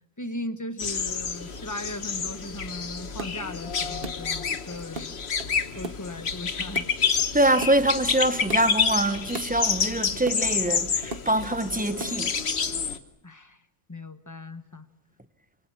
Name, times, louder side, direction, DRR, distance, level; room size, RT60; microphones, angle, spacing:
voice 1, 0.2-5.2 5.7-6.9 13.2-13.6 13.9-14.8, left 1 dB, 15° left, 1.1 m, -37 dB
sound 1, 0.8-13.0, left 6 dB, 60° left, 1.4 m, -29 dB
sound 2, 2.3-2.4 3.0-3.4 3.6-4.2 4.7-5.9 6.5-6.9 7.2-7.7 8.3-8.6 8.9-9.5 10.0-10.4 10.7-11.2 11.8-12.5, right 3 dB, 50° right, 1.5 m, -37 dB
voice 2, 7.3-12.3, right 1 dB, 10° right, 0.9 m, -24 dB
27.0 x 25.5 x 6.3 m
omnidirectional pair, 1.3 m